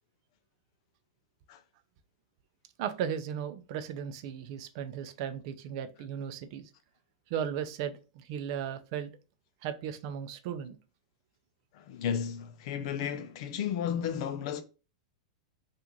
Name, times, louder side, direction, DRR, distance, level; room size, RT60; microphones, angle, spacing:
voice 1, 2.8-6.7 7.3-9.1 9.6-10.8, right 8 dB, 50° right, 0.5 m, -36 dB
voice 2, 11.7-14.6, left 8 dB, 55° left, 0.5 m, -33 dB
3.7 x 2.5 x 2.9 m
supercardioid pair, 145°, 4 cm